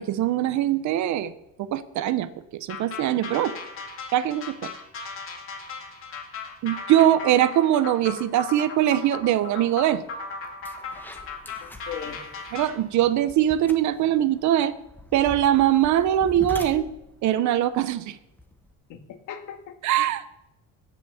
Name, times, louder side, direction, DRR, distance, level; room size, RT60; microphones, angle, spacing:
voice 1, 0.0-1.3 1.6-3.5 4.1-4.7 6.6-10.0 12.5-14.7 15.1-16.9 17.2-18.2 19.8-20.2, right 12 dB, 60° right, 14 dB, 0.9 m, -22 dB
sound 1, 2.7-12.8, left 4 dB, 40° left, 2.3 m, -37 dB
sound 2, 9.9-10.1 10.4-18.7, left 2 dB, 5° left, 1.2 m, -43 dB
voice 2, 11.6-12.2 18.9-20.1, left 8 dB, 65° left, 6 dB, 1.8 m, -39 dB
15.5 x 6.2 x 7.0 m, 0.90 s
cardioid pair, 125°, 32 cm